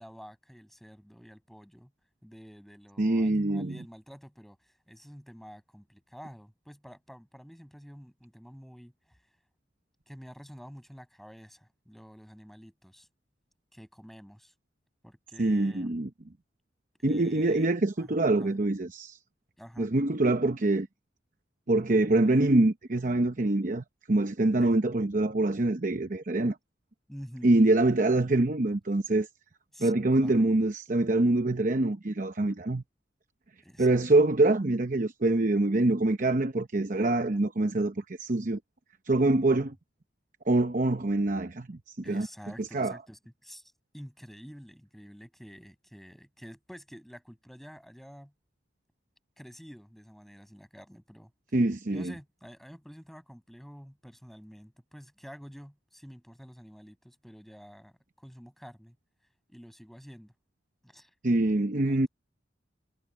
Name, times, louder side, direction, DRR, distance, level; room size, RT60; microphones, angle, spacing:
voice 1, 0.0-1.9 2.2-9.2 10.1-13.1 13.7-14.5 15.0-15.9 17.0-17.7 18.0-18.6 19.6-19.9 24.6-24.7 27.1-27.6 29.7-29.9 30.2-30.5 33.6-34.0 39.5-39.6 42.0-48.3 49.4-51.3 51.9-59.0 59.5-60.3 60.8-61.1 61.9-62.1, equal, ahead, 7.5 m, -49 dB
voice 2, 3.0-3.8 15.4-16.1 17.0-19.2 19.8-20.9 21.7-26.6 27.4-29.3 29.8-32.8 33.8-38.6 39.0-39.7 40.5-42.3 42.6-43.0 51.5-52.1 61.2-62.1, right 2 dB, 45° right, 0.8 m, -25 dB
head